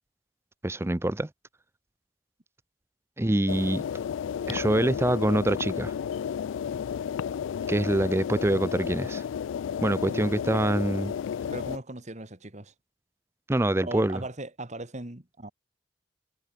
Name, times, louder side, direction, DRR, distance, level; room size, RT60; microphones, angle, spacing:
voice 1, 0.6-1.3 3.2-3.8 4.5-5.9 7.7-9.2 9.8-11.1 13.5-14.2, right 1 dB, 15° right, 0.5 m, -25 dB
sound 1, 3.5-11.8, left 8 dB, 90° left, 0.3 m, -32 dB
voice 2, 10.1-10.4 11.5-12.7 13.8-15.5, right 2 dB, 40° right, 2.0 m, -39 dB
head